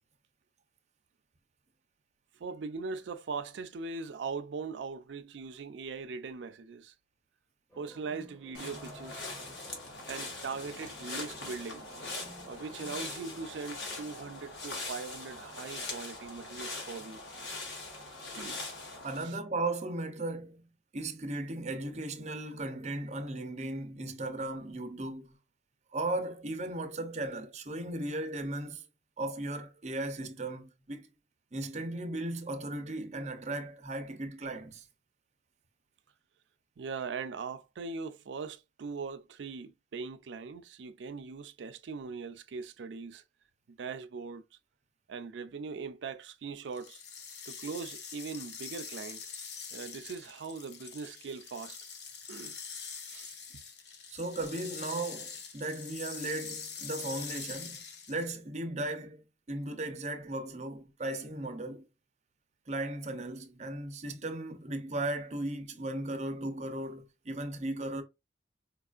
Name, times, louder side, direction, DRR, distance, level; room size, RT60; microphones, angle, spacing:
voice 1, 2.3-7.0 7.8-9.3 10.1-11.9 12.4-17.2 18.3-18.6 19.2-19.4 36.8-43.2 43.7-44.4 45.1-47.0 47.5-49.3 49.7-51.8 52.3-52.6 53.1-53.4, right 4 dB, 90° right, 0.4 m, -40 dB
sound 1, 7.7-13.4, equal, 20° left, 1.3 m, -55 dB
sound 2, 8.5-19.2, left 2 dB, 90° left, 1.4 m, -42 dB
voice 2, 19.0-20.7 20.9-25.4 25.9-28.8 29.2-31.1 31.5-34.9 54.1-57.8 58.1-61.8 62.7-68.0, right 2 dB, 40° right, 0.6 m, -36 dB
Rainstick sound, 46.7-58.4, left 6 dB, 70° left, 0.7 m, -44 dB
4.5 x 2.4 x 2.4 m
head